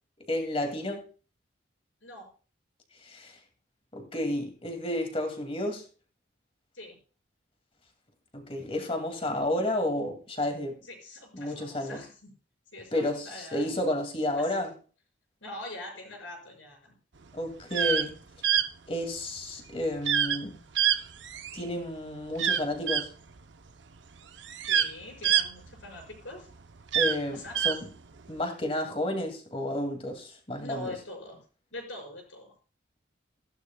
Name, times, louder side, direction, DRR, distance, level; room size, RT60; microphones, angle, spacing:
voice 1, 0.3-1.0 3.0-3.3 3.9-5.8 8.3-10.8 11.3-12.0 12.9-14.7 17.3-18.2 18.9-20.6 21.5-23.1 26.9-27.9 28.3-30.9, left 1 dB, 30° left, 2.3 m, -31 dB
voice 2, 10.8-12.3 12.7-13.8 15.4-17.0 24.7-26.5 27.3-27.6 30.6-31.4 31.7-32.5, left 1 dB, 80° left, 5.4 m, -43 dB
sound 1, 17.6-18.1 18.4-18.7 20.1-20.4 20.8-21.6 22.4-23.1 24.0-24.1 24.4-26.2 26.8-27.8, right 9 dB, 70° right, 0.7 m, -26 dB
15.5 x 11.5 x 2.3 m
head